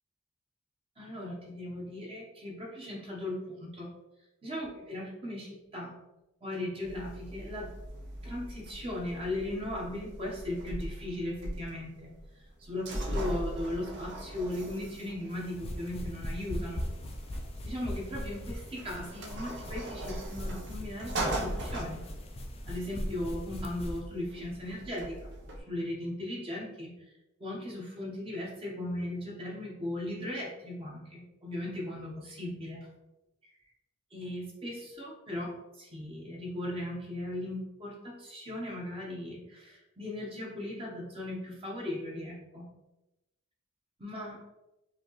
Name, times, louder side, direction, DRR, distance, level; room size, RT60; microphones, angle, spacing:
voice 1, 1.0-3.9 4.4-5.9 6.4-7.7 8.2-16.9 17.6-22.0 22.7-25.3 25.6-27.1 27.4-32.9 34.1-42.7 44.0-44.4, left 1 dB, 30° right, -3 dB, 1.0 m, -38 dB
sound 1, 6.8-25.6, right 1 dB, 60° right, 0.7 m, -40 dB
sound 2, 15.3-24.0, equal, 30° left, 0.5 m, -39 dB
5.0 x 2.9 x 3.0 m, 0.98 s
head